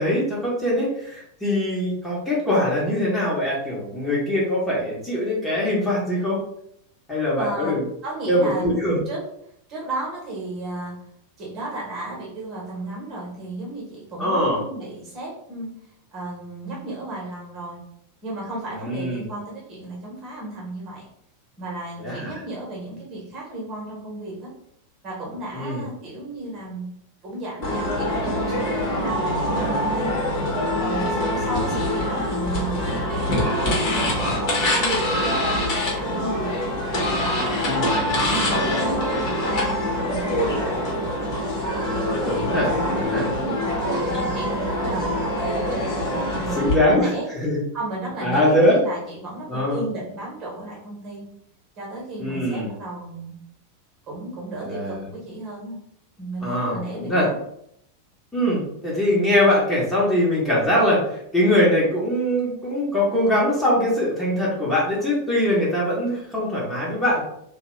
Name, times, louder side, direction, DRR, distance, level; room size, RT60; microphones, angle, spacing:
voice 1, 0.0-6.4 7.1-7.8 8.3-9.0 14.2-14.6 18.7-19.2 22.0-22.4 25.5-25.8 31.3-31.8 37.7-37.9 42.3-43.2 46.5-47.6 48.2-48.8 49.5-49.8 52.2-52.7 54.6-55.0 56.4-57.3 58.3-67.2, left 1 dB, 10° left, -7 dB, 1.1 m, -22 dB
voice 2, 7.4-7.7 8.0-8.7 9.1-9.2 9.7-10.9 11.4-15.7 16.1-17.8 18.2-21.0 21.6-24.5 25.0-26.8 27.2-30.2 30.7-34.1 34.6-36.6 36.9-41.2 41.9-43.8 44.3-45.9 46.1-47.3 47.7-51.2 51.8-53.3 54.1-55.8 56.2-57.4, right 2 dB, 35° right, -4 dB, 1.2 m, -34 dB
sound 1, 27.6-46.7, left 1 dB, 40° left, 1.0 m, -24 dB
2.7 x 2.3 x 3.1 m, 0.73 s
figure-of-eight pair, 90°, 0 cm